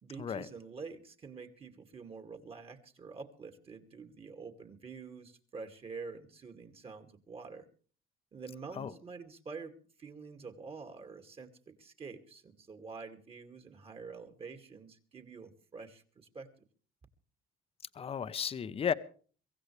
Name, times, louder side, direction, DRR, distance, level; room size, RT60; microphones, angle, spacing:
voice 1, 0.0-7.7 8.3-16.5, right 4 dB, 35° right, 2.4 m, -47 dB
voice 2, 17.9-18.9, left 7 dB, 35° left, 0.9 m, -34 dB
24.0 x 16.0 x 3.3 m
cardioid pair, 110°, 17 cm